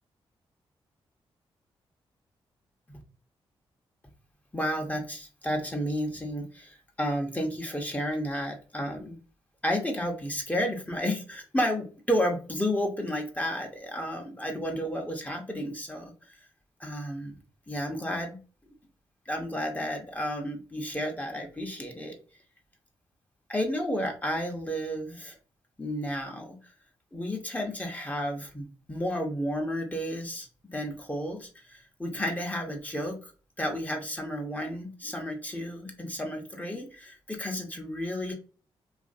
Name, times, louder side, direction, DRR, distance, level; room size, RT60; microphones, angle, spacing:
voice 1, 4.5-9.2 9.6-16.4 16.8-17.4 17.7-18.4 19.3-22.2 23.5-25.4 25.8-26.6 27.1-33.3 33.6-38.3, equal, 15° left, 1 dB, 0.7 m, -32 dB
2.6 x 2.5 x 2.5 m, 0.36 s
cardioid pair, 65°, 10 cm